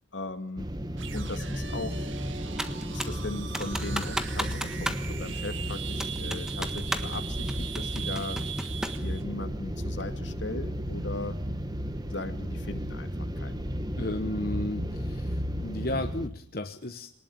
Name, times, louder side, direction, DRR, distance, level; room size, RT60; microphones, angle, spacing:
voice 1, 0.1-0.8 1.1-2.1 2.9-8.4 9.0-11.4 12.1-13.6, left 2 dB, 75° left, 8 dB, 2.2 m, -38 dB
sound 1, 0.6-16.3, equal, 20° right, 1.5 m, -34 dB
sound 2, 0.9-9.2, right 8 dB, 85° right, 1.8 m, -40 dB
Computer keyboard, 2.6-3.2 3.5-5.1 5.3-5.4 6.0-7.2 7.5-9.1, equal, 5° right, 1.4 m, -33 dB
voice 2, 14.0-17.1, left 1 dB, 50° left, 7 dB, 1.1 m, -33 dB
22.5 x 19.5 x 8.8 m, 0.66 s
head